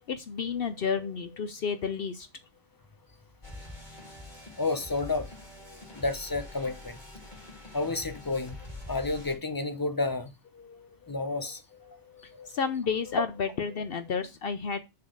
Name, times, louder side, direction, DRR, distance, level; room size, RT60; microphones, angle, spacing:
voice 1, 0.0-2.3 10.6-10.9 11.1-11.3 11.7-14.8, left 6 dB, 60° left, 0.8 m, -32 dB
sound 1, 3.4-9.4, left 2 dB, 40° left, 2.7 m, -45 dB
voice 2, 4.6-5.3 6.0-7.0 7.7-8.6 8.9-10.3 11.1-11.6 12.3-12.5, left 3 dB, 25° left, 0.6 m, -30 dB
6.7 x 4.2 x 6.4 m
omnidirectional pair, 1.2 m